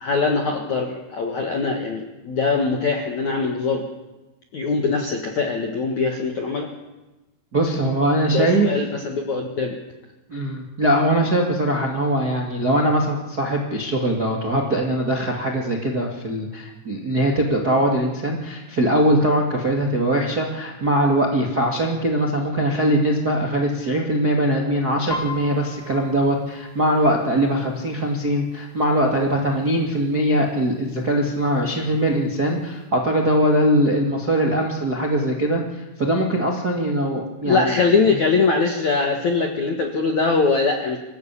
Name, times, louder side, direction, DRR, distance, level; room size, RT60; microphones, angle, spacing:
voice 1, 0.0-3.9 4.5-6.7 8.3-9.8 37.5-41.0, left 4 dB, 60° left, 3 dB, 1.9 m, -22 dB
voice 2, 7.5-8.7 10.3-37.8, right 1 dB, 40° right, 0 dB, 1.5 m, -21 dB
Piano, 25.1-28.7 29.1-29.5 29.8-30.5 31.1-31.2 31.4-32.4 32.8-32.9, left 1 dB, 45° left, 0.8 m, -37 dB
25.5 x 15.0 x 8.5 m, 1.1 s
omnidirectional pair, 5.9 m